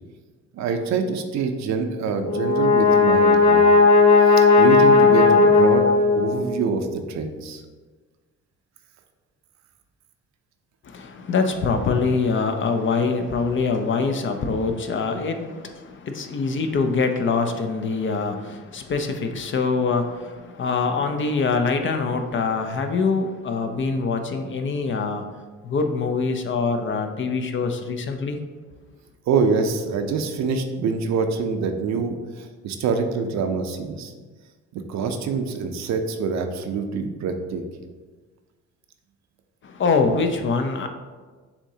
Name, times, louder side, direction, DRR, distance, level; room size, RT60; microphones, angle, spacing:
voice 1, 0.5-3.7 4.2-5.9 6.1-7.6 29.3-34.1 34.7-37.6, right 5 dB, 65° right, 6 dB, 0.6 m, -25 dB
Brass instrument, 2.2-6.6, left 4 dB, 85° left, 0.9 m, -15 dB
voice 2, 10.8-25.3 25.6-28.4 39.6-40.9, left 4 dB, 40° left, 6 dB, 0.6 m, -24 dB
7.0 x 2.8 x 2.7 m, 1.4 s
cardioid pair, 80°, 29 cm